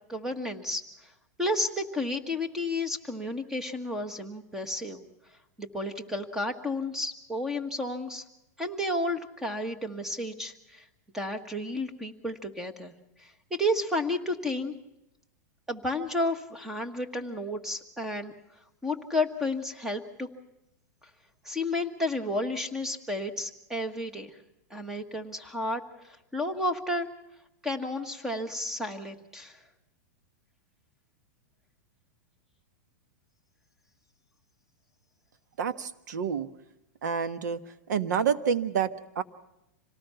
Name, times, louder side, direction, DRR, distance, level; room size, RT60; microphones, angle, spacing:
voice 1, 0.1-0.8 1.4-5.0 5.6-8.2 8.6-10.9 11.1-12.9 13.2-14.7 15.7-18.3 18.8-20.3 21.4-24.4 24.7-27.1 27.6-29.6, left 1 dB, 5° right, 7 dB, 1.5 m, -32 dB
voice 2, 35.6-36.5 37.0-37.6 37.9-39.2, right 7 dB, 85° right, 11 dB, 1.4 m, -28 dB
26.5 x 18.5 x 5.7 m, 0.88 s
supercardioid pair, 155°, 9 cm